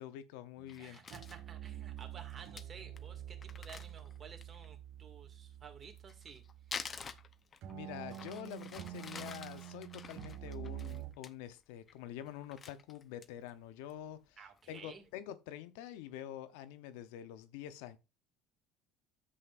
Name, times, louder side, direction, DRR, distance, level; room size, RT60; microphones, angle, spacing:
voice 1, 0.0-1.0 7.7-14.4 14.7-18.0, left 11 dB, 80° left, 0.7 m, -47 dB
sound 1, 0.6-0.8 1.1-7.3 7.6-11.1, right 12 dB, 60° right, 1.6 m, -47 dB
Crumpling crinkling, 0.7-1.4 2.0-2.1 2.3-2.4 2.6-2.7 3.0-3.1 3.4-4.7 5.8-7.7 8.1-11.3 11.7-12.0 12.3-13.5 13.9-14.0 14.4-14.8, left 6 dB, 35° left, 0.7 m, -48 dB
voice 2, 0.8-6.4 14.4-15.1, right 6 dB, 35° right, 2.1 m, -53 dB
9.8 x 7.8 x 2.5 m
supercardioid pair, 85°, 0 cm